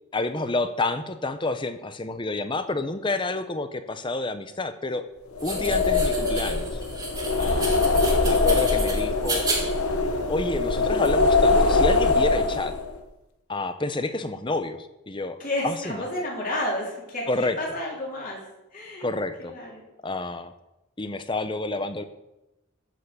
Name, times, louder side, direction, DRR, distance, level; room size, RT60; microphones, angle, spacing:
voice 1, 0.1-5.1 5.4-6.8 7.4-7.7 8.2-9.5 10.3-12.7 13.5-15.4 15.6-16.0 17.3-17.6 19.0-19.5 20.0-20.5 21.0-22.0, left 2 dB, 20° left, 10 dB, 0.7 m, -29 dB
sound 1, 5.4-13.0, left 3 dB, 80° left, 1.1 m, -22 dB
sound 2, 5.4-11.1, right 3 dB, 15° right, 2.1 m, -33 dB
voice 2, 15.4-18.4 18.7-19.1 19.4-19.8, left 1 dB, 40° left, -3 dB, 3.7 m, -31 dB
14.0 x 5.7 x 6.8 m, 0.94 s
head